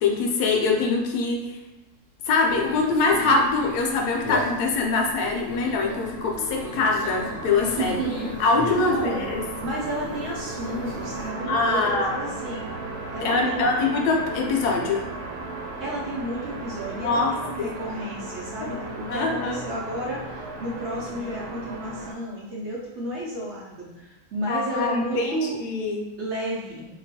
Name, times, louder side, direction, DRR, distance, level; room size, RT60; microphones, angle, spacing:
voice 1, 0.0-1.6 2.3-7.9 8.4-9.4 11.5-12.2 13.2-15.1 17.0-17.7 18.6-18.7 19.1-19.6 24.5-26.1, left 3 dB, 90° left, 2 dB, 1.2 m, -23 dB
Conversation, 2.4-11.3, left 3 dB, 65° left, 1.0 m, -37 dB
sound 1, 5.0-22.1, right 2 dB, 90° right, 1.1 m, -36 dB
voice 2, 7.8-8.4 8.8-9.2 9.6-12.6 13.1-13.9 15.8-25.6 26.2-26.9, right 1 dB, 55° right, -5 dB, 0.9 m, -32 dB
3.0 x 2.3 x 4.1 m, 1.0 s
omnidirectional pair, 1.7 m